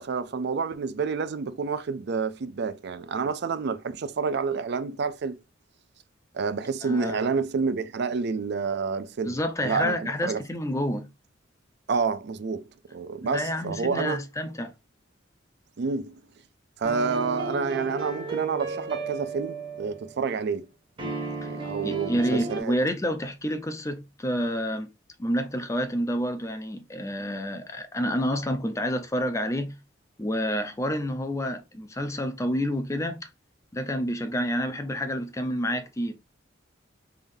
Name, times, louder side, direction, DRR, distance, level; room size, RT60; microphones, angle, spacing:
voice 1, 0.0-5.4 6.3-9.4 9.6-9.9 10.2-10.4 11.9-12.6 12.9-14.2 15.8-16.2 16.8-20.7 21.0-22.7, right 5 dB, 60° right, 0.4 m, -29 dB
voice 2, 6.8-7.3 9.2-11.1 13.2-14.7 21.4-21.5 21.8-24.9 25.2-29.8 30.2-33.3 33.7-36.1, equal, 15° left, 0.5 m, -29 dB
sound 1, 16.8-20.1 21.0-22.6, right 4 dB, 25° right, 1.2 m, -33 dB
3.5 x 3.5 x 2.6 m
head